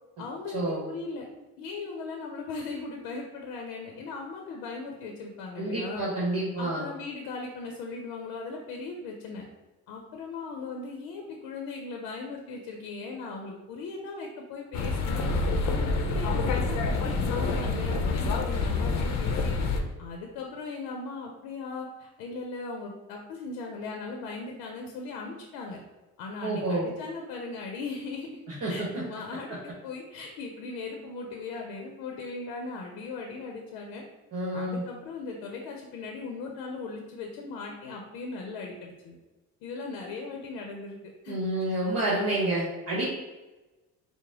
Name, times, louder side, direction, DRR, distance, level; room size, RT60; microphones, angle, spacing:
voice 1, 0.2-1.3 1.6-6.1 6.6-9.4 9.9-15.3 15.6-19.6 20.0-25.8 26.2-28.4 28.7-34.0 34.5-39.2 39.6-41.0 41.2-41.4, left 3 dB, 90° left, 1 dB, 0.6 m, -38 dB
voice 2, 5.6-6.8 26.4-26.9 28.6-28.9 34.3-34.8 41.3-43.0, right 1 dB, 45° right, -6 dB, 1.2 m, -28 dB
sound 1, 14.7-19.8, left 3 dB, 50° left, 0.6 m, -27 dB
4.9 x 2.1 x 3.6 m, 1.1 s
cardioid pair, 105°, 35 cm